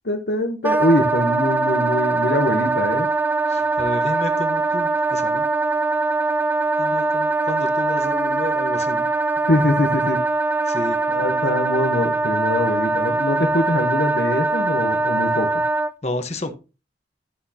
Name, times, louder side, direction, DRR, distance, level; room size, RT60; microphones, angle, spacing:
voice 1, 0.0-3.1 9.5-10.2 11.1-15.5, left 1 dB, 70° left, 4 dB, 1.1 m, -23 dB
Wind instrument woodwind instrument, 0.6-15.9, right 3 dB, 10° right, 0.3 m, -22 dB
voice 2, 3.5-5.5 6.8-9.1 10.6-11.0 16.0-16.5, left 1 dB, 40° left, 7 dB, 1.2 m, -30 dB
12.0 x 6.1 x 2.9 m, 0.31 s
head